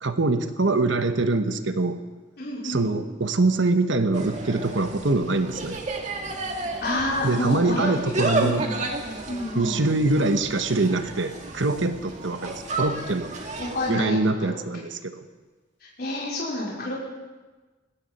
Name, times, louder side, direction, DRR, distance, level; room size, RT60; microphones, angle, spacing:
voice 1, 0.0-2.0 2.6-5.8 7.2-8.6 9.5-13.3 13.9-15.2, right 2 dB, 80° right, 9 dB, 1.1 m, -24 dB
voice 2, 2.4-2.9 6.8-7.9 8.4-8.7 9.3-9.7 13.6-14.1 14.5-14.6 16.0-16.9, left 1 dB, 55° left, -6 dB, 4.6 m, -28 dB
Insect, 4.1-13.9, right 2 dB, 40° right, 2.0 m, -32 dB
20.0 x 16.5 x 4.3 m, 1.3 s
head